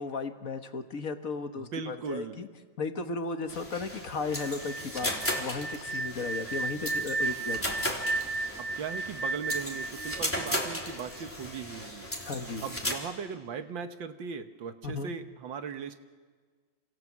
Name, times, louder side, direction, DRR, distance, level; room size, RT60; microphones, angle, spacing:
voice 1, 0.0-2.5 2.8-7.9 12.2-12.6 14.8-15.1, left 4 dB, 45° left, 7 dB, 1.7 m, -35 dB
voice 2, 1.6-2.4 8.6-12.1 12.6-15.9, right 6 dB, 75° right, 8 dB, 2.0 m, -38 dB
sound 1, 3.5-12.9, equal, 5° left, 3.7 m, -36 dB
sound 2, 4.3-11.2, right 3 dB, 15° right, 1.2 m, -34 dB
28.5 x 27.0 x 7.4 m, 1.5 s
omnidirectional pair, 2.1 m